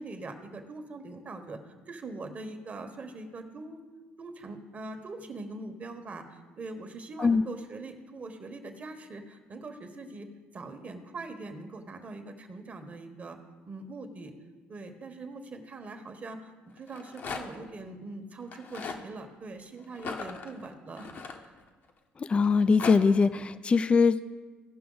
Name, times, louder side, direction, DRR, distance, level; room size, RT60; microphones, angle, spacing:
voice 1, 0.0-3.8 4.2-10.3 10.5-13.4 13.6-14.3 14.7-21.1 21.4-21.5, right 2 dB, 35° right, 6 dB, 1.2 m, -42 dB
Rattle, 16.8-17.7 18.4-19.0 19.9-21.9 22.4-23.0, left 4 dB, 50° left, 1.1 m, -39 dB
voice 2, 22.2-24.2, left 5 dB, 25° left, 13 dB, 0.4 m, -22 dB
16.5 x 5.7 x 3.9 m, 1.3 s
cardioid pair, 95°, 4 cm